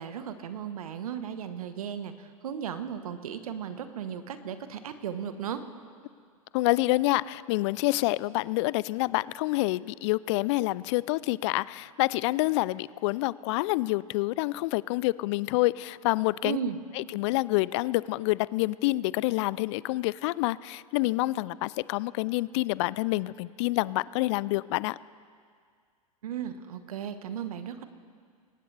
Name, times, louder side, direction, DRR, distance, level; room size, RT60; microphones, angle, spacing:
voice 1, 0.0-5.6 16.4-16.8 26.2-27.8, right 8 dB, 75° right, 10 dB, 1.2 m, -35 dB
voice 2, 6.5-16.6 17.0-25.0, left 19 dB, 50° left, 20 dB, 0.4 m, -27 dB
22.5 x 18.5 x 3.4 m, 2.1 s
hypercardioid pair, 100°, 19 cm